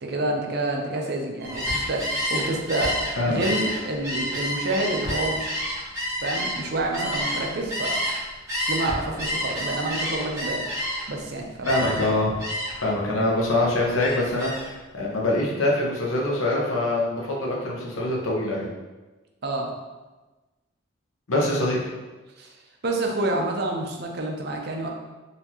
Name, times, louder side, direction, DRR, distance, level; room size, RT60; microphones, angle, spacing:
voice 1, 0.0-3.0 3.3-5.7 6.2-8.0 8.7-10.6 11.1-11.7 19.4-19.7 22.4-22.5 22.8-24.9, right 2 dB, 50° right, 1 dB, 0.5 m, -28 dB
Gull seagull, 1.4-8.2 8.5-11.2 11.6-12.1 12.4-12.9 13.2-14.7, equal, 15° right, 1.2 m, -29 dB
voice 2, 11.7-12.3 12.8-18.7 21.3-21.9, left 1 dB, 90° left, -3 dB, 0.9 m, -24 dB
4.2 x 2.7 x 2.8 m, 1.2 s
head